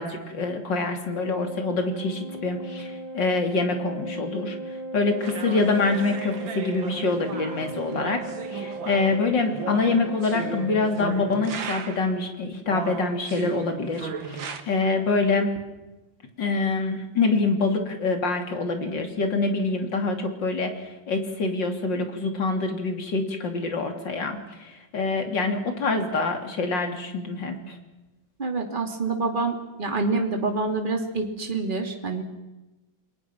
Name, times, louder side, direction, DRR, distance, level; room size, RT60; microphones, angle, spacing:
voice 1, 0.0-8.2 8.5-15.5 16.4-27.8, left 3 dB, 70° left, 5 dB, 3.7 m, -26 dB
Organ, 1.1-11.8, right 1 dB, 50° right, 3.8 m, -38 dB
sound 1, 5.2-12.2 12.7-14.6, right 5 dB, 80° right, 2.5 m, -36 dB
voice 2, 28.4-32.2, right 3 dB, 25° right, 3 dB, 3.0 m, -27 dB
29.0 x 22.0 x 6.1 m, 1.0 s
omnidirectional pair, 2.1 m